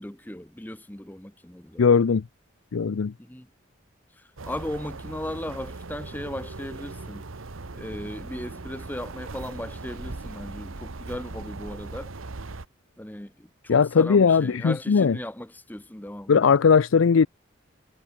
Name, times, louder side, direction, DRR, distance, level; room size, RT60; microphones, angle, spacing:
voice 1, 0.0-1.8 3.2-3.5 4.2-7.3 7.7-12.1 13.0-16.5, left 1 dB, 10° left, 0.9 m, -37 dB
voice 2, 1.8-2.2 2.7-3.1 13.7-15.2 16.3-17.3, left 6 dB, 85° left, 0.5 m, -19 dB
sound 1, 4.4-12.7, right 3 dB, 90° right, 1.2 m, -39 dB
head